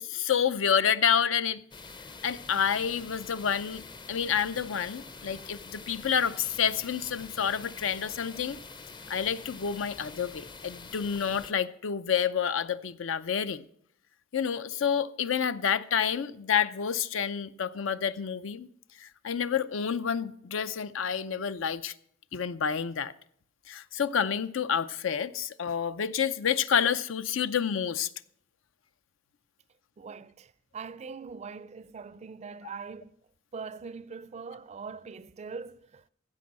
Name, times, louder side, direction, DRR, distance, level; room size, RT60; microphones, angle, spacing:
voice 1, 0.0-1.6 2.2-8.6 9.1-13.7 14.3-18.7 19.0-21.9 22.3-23.1 23.7-28.1, left 7 dB, 85° left, 0.5 m, -29 dB
sound 1, 1.7-11.5, left 4 dB, 25° left, 0.5 m, -46 dB
voice 2, 30.0-33.1 33.5-36.1, right 5 dB, 35° right, 0.4 m, -42 dB
15.5 x 5.4 x 7.4 m
head